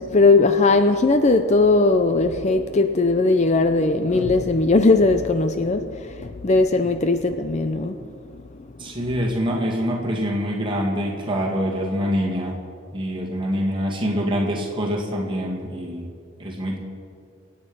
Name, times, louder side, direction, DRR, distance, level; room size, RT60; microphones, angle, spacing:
voice 1, 0.0-5.8 6.2-7.9, left 3 dB, 30° left, 8 dB, 0.5 m, -18 dB
voice 2, 8.8-12.6 12.9-16.1 16.4-16.8, equal, 25° right, -2 dB, 2.1 m, -25 dB
25.0 x 8.8 x 5.4 m, 2.4 s
head